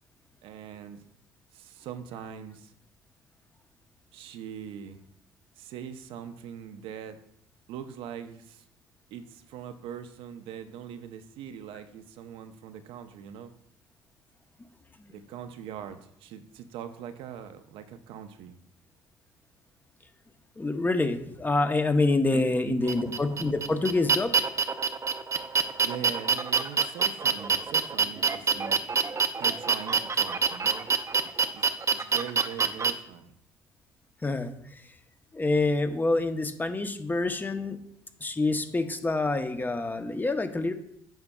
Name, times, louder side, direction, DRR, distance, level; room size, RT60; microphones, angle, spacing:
voice 1, 0.4-1.0 1.5-2.7 4.1-5.0 5.6-7.2 7.7-8.6 9.1-13.5 15.1-18.6 22.3-23.0 25.8-28.8 29.4-30.9 31.2-31.7 31.9-33.3, right 8 dB, 70° right, 9 dB, 0.6 m, -41 dB
voice 2, 20.6-24.3 34.2-34.8 35.3-37.8 38.2-40.7, left 2 dB, 20° left, 8 dB, 0.8 m, -27 dB
sound 1, 22.9-32.9, right 5 dB, 30° right, 0.7 m, -26 dB
9.0 x 5.8 x 2.3 m, 0.73 s
supercardioid pair, 65°, 9 cm